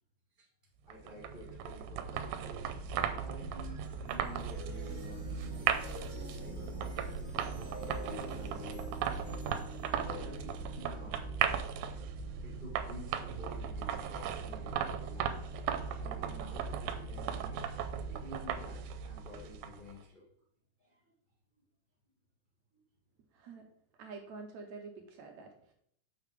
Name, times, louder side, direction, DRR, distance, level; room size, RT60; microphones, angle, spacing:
voice 1, 0.9-5.7 6.4-9.6 10.0-11.4 12.4-15.5 15.9-17.6 18.1-20.3 20.8-21.0 22.7-22.8, left 1 dB, 80° left, -5 dB, 0.4 m, -51 dB
sound 1, 0.9-19.9, right 7 dB, 90° right, 2.4 m, -37 dB
sound 2, 3.4-12.7, left 2 dB, ahead, 2.4 m, -49 dB
voice 2, 23.3-23.7 24.0-25.7, right 4 dB, 75° right, 3 dB, 1.8 m, -47 dB
6.7 x 6.6 x 3.4 m, 0.68 s
omnidirectional pair, 3.9 m